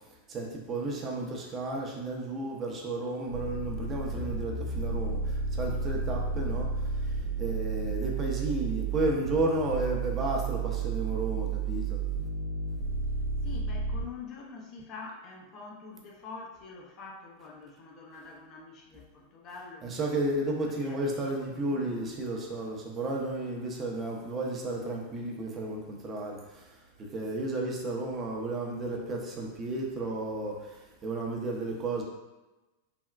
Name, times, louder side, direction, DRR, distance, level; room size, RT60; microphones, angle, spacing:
voice 1, 0.3-5.2 5.5-6.7 7.4-12.0 19.8-26.4 27.1-30.6 31.0-32.0, right 2 dB, 30° right, -1 dB, 0.6 m, -32 dB
sound 1, 3.3-14.1, right 4 dB, 70° right, 0.6 m, -32 dB
voice 2, 13.4-19.9 20.7-22.2, left 4 dB, 40° left, 0 dB, 0.5 m, -46 dB
3.4 x 2.1 x 2.3 m, 1.1 s
hypercardioid pair, 100°, 0 cm